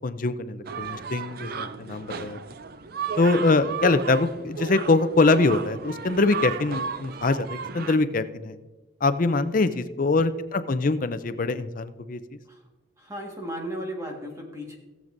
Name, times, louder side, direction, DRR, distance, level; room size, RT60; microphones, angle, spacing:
voice 1, 0.0-2.4 3.2-8.5 9.0-12.2, left 3 dB, 40° left, 11 dB, 0.5 m, -23 dB
sound 1, 0.6-8.0, right 6 dB, 45° right, 0.4 m, -34 dB
voice 2, 1.4-1.7 9.3-9.8 12.5-12.6 13.0-14.8, equal, 15° right, 0 dB, 1.6 m, -36 dB
18.0 x 7.4 x 2.6 m, 1.2 s
head